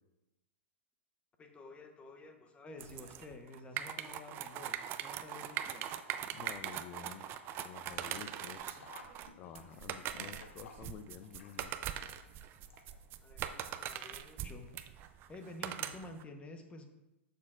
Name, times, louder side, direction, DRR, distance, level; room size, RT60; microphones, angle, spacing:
voice 1, 1.4-5.9 13.2-14.7 15.3-16.8, left 2 dB, 20° left, 5 dB, 1.0 m, -51 dB
sound 1, 2.8-16.2, right 10 dB, 35° right, 0.5 m, -41 dB
voice 2, 6.3-7.2 7.6-8.7 9.4-11.7, left 9 dB, 35° left, 11 dB, 0.6 m, -50 dB
Sink (filling or washing), 8.3-13.3 13.6-13.7 14.7-14.8 15.1-15.2, left 4 dB, 80° left, 1.1 m, -56 dB
11.5 x 6.7 x 2.5 m, 0.97 s
hypercardioid pair, 125°, 7 cm